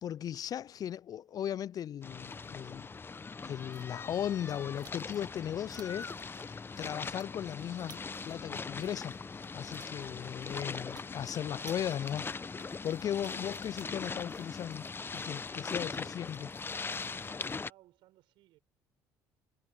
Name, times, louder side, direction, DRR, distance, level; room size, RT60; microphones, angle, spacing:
voice 1, 0.0-2.9 3.4-9.2 9.5-12.4 12.8-14.9 15.1-16.5, left 10 dB, 45° left, 0.3 m, -37 dB
sound 1, 2.0-17.7, left 4 dB, 25° left, 1.0 m, -41 dB
sound 2, 3.7-5.4 5.7-6.2 6.5-7.3 7.6-10.1 10.4-10.5 10.8-14.8, right 9 dB, 55° right, 5.0 m, -60 dB
voice 2, 9.9-10.5 15.9-16.6 17.3-18.6, right 16 dB, 75° right, 7.0 m, -65 dB
hypercardioid pair, 65°, 8 cm